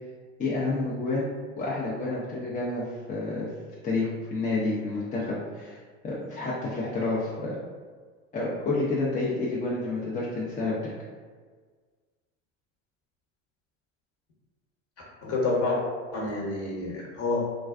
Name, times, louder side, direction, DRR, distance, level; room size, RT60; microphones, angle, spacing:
voice 1, 0.4-1.3 1.6-3.5 3.8-5.8 6.0-7.6 8.3-10.8, left 2 dB, 20° left, -6 dB, 0.5 m, -29 dB
voice 2, 15.2-15.8 16.1-17.5, left 3 dB, 40° left, -4 dB, 0.9 m, -28 dB
2.3 x 2.3 x 2.3 m, 1.5 s
hypercardioid pair, 85°, 37 cm